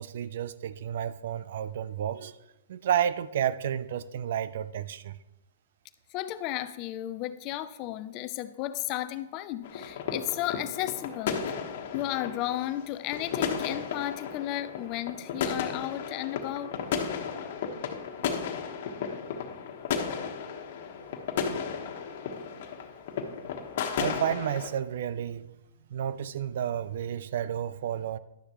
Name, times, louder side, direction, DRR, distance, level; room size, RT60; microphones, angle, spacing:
voice 1, 0.0-2.3 2.7-5.2 16.6-16.7 24.0-25.5 25.9-28.2, right 9 dB, 65° right, 0.5 m, -31 dB
voice 2, 6.1-11.5 11.9-16.7, left 14 dB, 40° left, 0.6 m, -34 dB
sound 1, 9.6-24.7, left 6 dB, 55° left, 1.4 m, -34 dB
11.5 x 9.7 x 3.1 m
hypercardioid pair, 125°, 0 cm